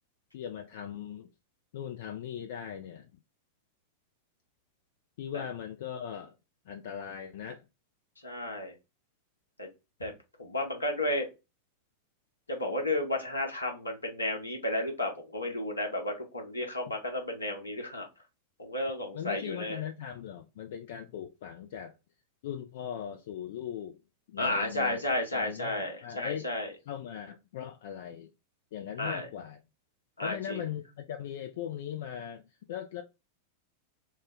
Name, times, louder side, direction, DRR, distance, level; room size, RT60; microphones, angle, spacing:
voice 1, 0.3-1.3 1.7-3.1 5.2-6.3 6.7-7.6 19.1-21.9 22.4-24.0 24.3-25.0 25.3-26.5 26.9-28.3 28.7-29.6 30.2-32.4 32.7-33.0, left 9 dB, 55° left, 0.3 m, -39 dB
voice 2, 8.2-8.7 9.6-9.7 10.0-10.1 10.4-11.3 12.5-18.1 18.6-19.8 24.4-26.7 29.0-29.3 30.2-30.6, left 1 dB, 80° left, 0.9 m, -32 dB
3.1 x 2.1 x 3.6 m
figure-of-eight pair, 90°, 0 cm